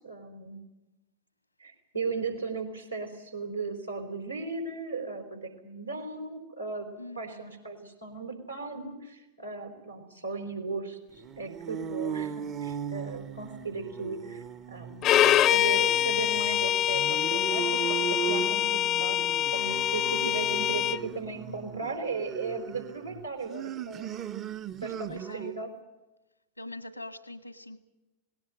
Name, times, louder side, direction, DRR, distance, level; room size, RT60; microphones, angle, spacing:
voice 1, 0.0-0.6 1.6-6.9 7.2-19.2 19.5-24.4 24.8-25.7, right 4 dB, 85° right, 4 dB, 4.0 m, -37 dB
voice 2, 7.0-7.5 20.0-20.4 25.1-25.5 26.6-27.8, left 1 dB, 90° left, 13 dB, 1.6 m, -43 dB
sound 1, 11.2-25.7, right 7 dB, 30° right, 0.7 m, -38 dB
Bowed string instrument, 15.0-21.0, left 12 dB, 35° left, 0.6 m, -25 dB
19.5 x 17.5 x 9.1 m, 1.0 s
figure-of-eight pair, 90°, 0 cm